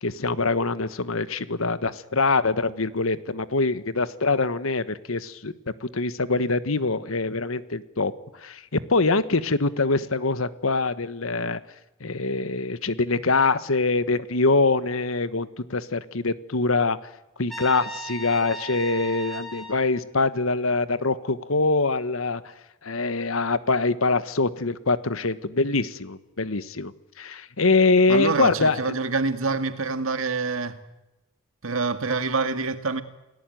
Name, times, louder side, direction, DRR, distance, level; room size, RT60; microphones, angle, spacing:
voice 1, 0.0-5.5 5.8-8.1 8.4-11.6 12.0-17.0 17.4-22.4 22.8-28.9, left 3 dB, 80° left, 1.4 m, -24 dB
Trumpet, 17.5-19.8, right 3 dB, ahead, 4.7 m, -36 dB
voice 2, 28.1-30.8 31.6-33.0, right 4 dB, 80° right, 2.0 m, -26 dB
29.5 x 18.0 x 9.2 m
head